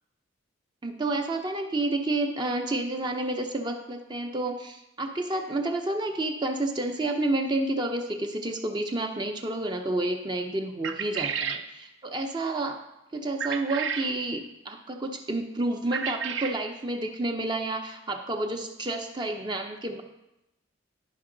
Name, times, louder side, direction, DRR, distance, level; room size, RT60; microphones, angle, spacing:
voice 1, 0.8-12.8 13.1-20.0, right 2 dB, 20° right, 3 dB, 0.5 m, -30 dB
sound 1, 10.8-11.6 13.4-14.1 15.9-16.6, right 6 dB, 70° right, 0.5 m, -31 dB
10.5 x 5.2 x 3.8 m, 0.90 s
head